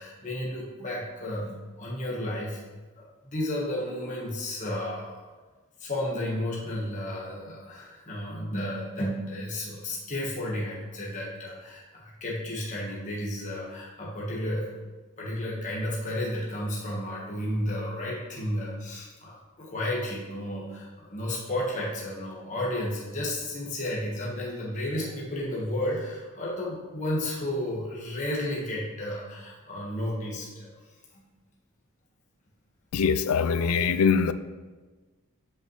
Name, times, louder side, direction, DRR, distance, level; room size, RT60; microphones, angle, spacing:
voice 1, 0.0-2.6 2.9-5.2 5.8-14.7 15.2-30.7 31.1-31.2, left 1 dB, 35° left, -5 dB, 1.3 m, -32 dB
voice 2, 32.9-34.3, left 6 dB, 75° left, 12 dB, 0.4 m, -23 dB
8.5 x 5.5 x 3.1 m, 1.3 s
head